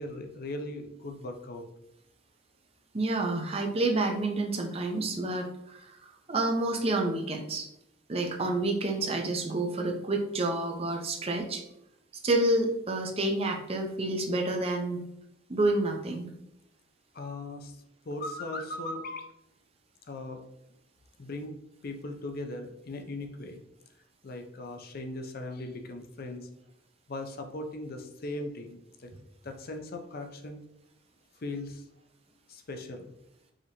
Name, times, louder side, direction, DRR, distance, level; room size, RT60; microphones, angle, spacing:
voice 1, 0.0-1.6 17.1-17.8 18.0-19.3 20.1-20.4 21.2-21.6 21.8-23.6 24.2-26.5 27.1-29.1 29.4-30.6 31.4-31.8 32.5-33.1, left 2 dB, 50° left, 5 dB, 0.5 m, -38 dB
voice 2, 2.9-5.8 6.3-7.7 8.1-11.6 12.2-15.0 15.5-16.3, right 2 dB, 30° right, 3 dB, 0.6 m, -29 dB
4.9 x 2.9 x 2.8 m, 0.81 s
head